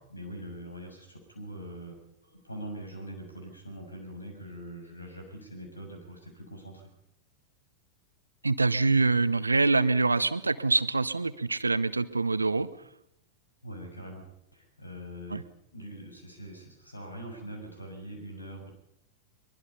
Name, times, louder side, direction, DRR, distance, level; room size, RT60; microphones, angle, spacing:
voice 1, 0.1-2.0 2.2-6.9 13.6-14.2 14.5-15.4 15.7-18.7, equal, 80° left, 4 dB, 6.7 m, -43 dB
voice 2, 8.4-12.7 15.3-15.4, right 3 dB, 80° right, 16 dB, 0.9 m, -25 dB
23.0 x 22.5 x 5.6 m, 0.80 s
figure-of-eight pair, 90°, 0 cm